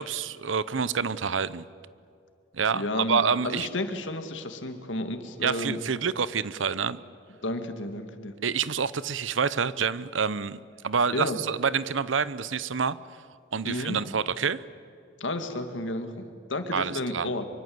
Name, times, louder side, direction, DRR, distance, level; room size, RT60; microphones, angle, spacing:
voice 1, 0.0-1.7 2.5-3.7 5.4-7.0 8.4-13.0 13.5-14.6 16.7-17.3, right 6 dB, 90° right, 17 dB, 0.8 m, -27 dB
voice 2, 2.7-5.8 7.4-8.3 11.1-11.4 13.6-14.0 15.2-17.5, left 1 dB, 80° left, 7 dB, 2.2 m, -32 dB
24.5 x 24.0 x 7.9 m, 2.6 s
head